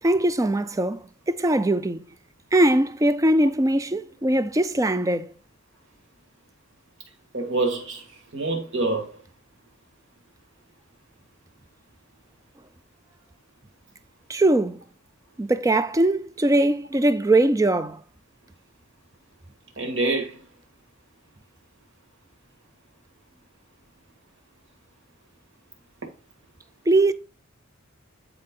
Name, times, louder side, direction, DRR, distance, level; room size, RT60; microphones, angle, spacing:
voice 1, 0.0-2.1 2.5-5.3 14.3-14.8 15.4-18.0 26.9-27.1, right 1 dB, 15° right, 0.4 m, -21 dB
voice 2, 7.3-9.2 19.8-20.4, right 2 dB, 60° right, 2.0 m, -26 dB
9.4 x 4.3 x 3.7 m
head